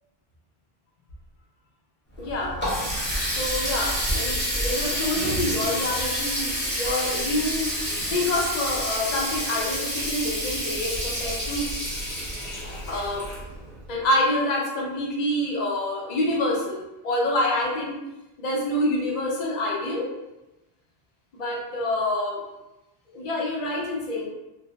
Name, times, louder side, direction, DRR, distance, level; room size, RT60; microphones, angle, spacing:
Water tap faucet, 2.1-13.8, equal, 10° left, 0.8 m, -28 dB
voice 1, 2.2-2.6 3.3-7.7 8.1-11.7 12.9-13.3 13.9-18.0 18.4-20.1 21.4-22.4 23.1-24.3, left 1 dB, 45° left, -3 dB, 0.7 m, -27 dB
2.6 x 2.1 x 3.0 m, 0.99 s
omnidirectional pair, 1.1 m